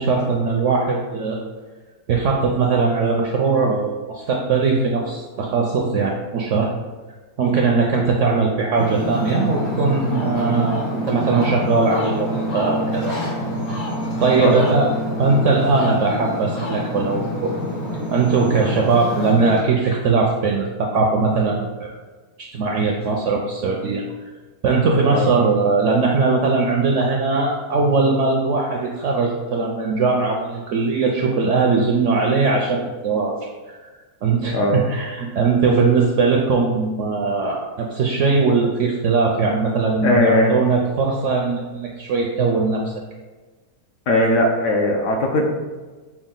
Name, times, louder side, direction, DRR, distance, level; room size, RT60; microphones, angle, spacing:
voice 1, 0.0-1.4 2.1-6.7 7.4-13.1 14.2-14.9 15.2-17.5 18.1-21.9 22.4-24.0 24.6-33.3 33.7-33.8 34.2-42.9, right 4 dB, 70° right, 0 dB, 0.7 m, -20 dB
Ocean, 8.7-19.6, equal, 85° left, 2.3 m, -26 dB
voice 2, 14.4-14.7 25.1-25.3 34.5-34.7 40.0-40.8 44.1-45.5, left 1 dB, 65° left, 1 dB, 0.9 m, -19 dB
5.8 x 2.3 x 3.7 m, 1.3 s
omnidirectional pair, 1.7 m